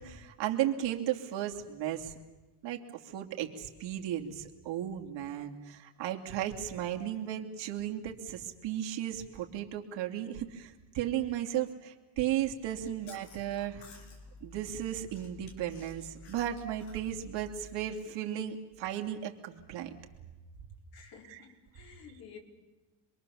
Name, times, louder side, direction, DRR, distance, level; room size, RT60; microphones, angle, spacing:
voice 1, 0.0-2.1 2.6-13.8 14.4-20.0 21.2-21.4, right 11 dB, 65° right, 2.9 m, -35 dB
Chewing mastication, 12.5-17.9, left 3 dB, 80° left, 4.9 m, -52 dB
voice 2, 20.9-22.4, left 7 dB, 50° left, 4.3 m, -52 dB
27.5 x 22.0 x 7.1 m
cardioid pair, 125°, 47 cm